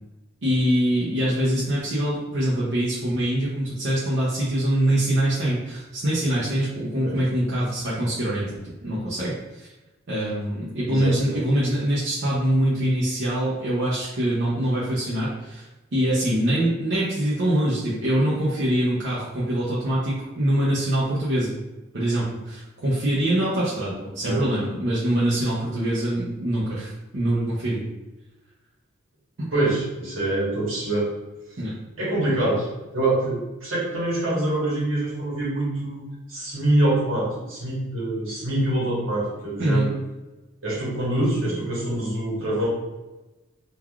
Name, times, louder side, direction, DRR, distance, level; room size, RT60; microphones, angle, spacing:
voice 1, 0.4-9.7 10.1-21.5 21.9-27.8 29.4-29.5 31.6-31.7 39.6-39.9, right 1 dB, 60° right, -8 dB, 0.6 m, -24 dB
voice 2, 10.9-11.4 24.2-24.4 29.5-31.1 32.0-32.7 32.9-36.0 36.3-39.9 40.6-42.7, right 1 dB, 80° right, -6 dB, 1.1 m, -25 dB
3.2 x 2.3 x 2.3 m, 1.1 s
head